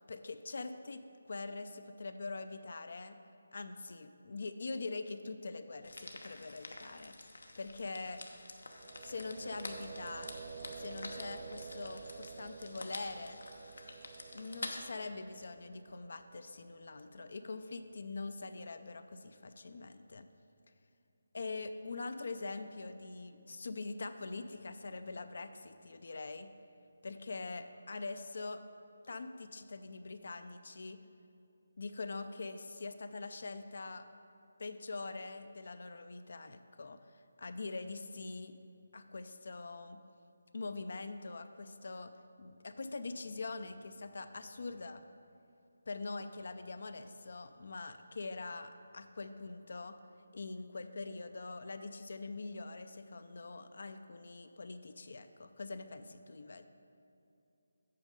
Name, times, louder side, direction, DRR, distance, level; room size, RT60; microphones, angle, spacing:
voice 1, 0.1-3.2 3.5-7.2 7.6-8.2 9.0-10.3 10.8-13.4 14.3-20.3 21.3-26.5 27.0-28.6 29.1-31.0 31.8-34.1 34.6-37.0 37.4-38.6 38.9-40.0 40.5-42.1 42.4-45.0 45.9-50.0 50.3-56.6, left 3 dB, 60° left, 9 dB, 0.4 m, -43 dB
sound 1, 5.8-14.7, left 2 dB, 85° left, 0.9 m, -48 dB
sound 2, 8.7-18.5, right 5 dB, 40° right, 0.3 m, -51 dB
8.4 x 5.3 x 5.1 m, 2.7 s
figure-of-eight pair, 165°, 0 cm